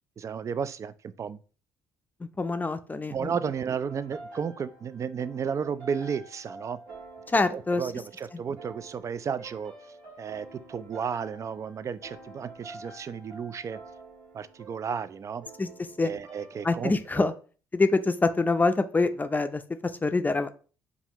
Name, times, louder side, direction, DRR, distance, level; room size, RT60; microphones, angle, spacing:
voice 1, 0.2-1.4 3.1-6.8 7.5-9.7 10.2-13.8 14.3-15.4 16.0-17.3, right 7 dB, 40° right, 0.4 m, -33 dB
voice 2, 2.4-3.3 7.3-7.8 15.6-15.7 16.0-16.1 16.6-17.3 17.7-20.6, left 3 dB, 20° left, 0.5 m, -25 dB
sound 1, 3.5-17.1, right 2 dB, 80° right, 1.7 m, -48 dB
5.3 x 2.4 x 3.0 m
supercardioid pair, 65°, 8 cm